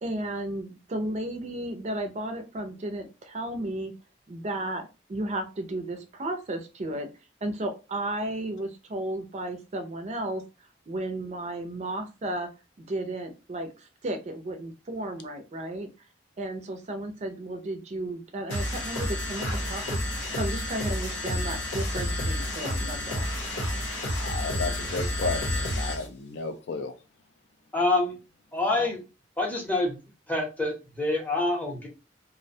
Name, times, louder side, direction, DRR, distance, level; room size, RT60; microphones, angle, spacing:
voice 1, 0.0-3.9 4.3-7.1 7.4-10.4 10.9-12.5 12.8-15.9 16.4-23.3, right 1 dB, 40° right, 6 dB, 0.4 m, -34 dB
sound 1, 18.5-26.1, left 1 dB, 85° left, 0.9 m, -30 dB
voice 2, 24.2-26.9 28.7-28.9, left 4 dB, 70° left, 7 dB, 0.4 m, -33 dB
voice 3, 27.7-28.2 28.5-29.0 29.4-29.9 30.3-31.9, left 2 dB, 10° left, 1 dB, 0.6 m, -26 dB
2.4 x 2.1 x 2.6 m, 0.29 s
head